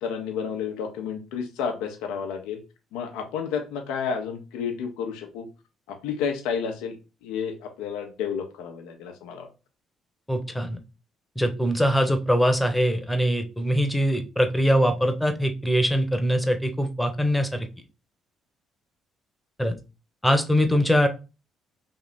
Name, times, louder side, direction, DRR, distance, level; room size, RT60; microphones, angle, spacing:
voice 1, 0.0-2.6 2.9-5.5 5.9-7.0 7.2-9.5 20.7-20.8, left 6 dB, 85° left, 4 dB, 0.7 m, -31 dB
voice 2, 10.3-10.8 11.4-17.7 19.6-19.7 20.2-21.1, equal, 5° left, 6 dB, 0.9 m, -22 dB
3.4 x 2.8 x 4.1 m, 0.30 s
supercardioid pair, 65°, 0 cm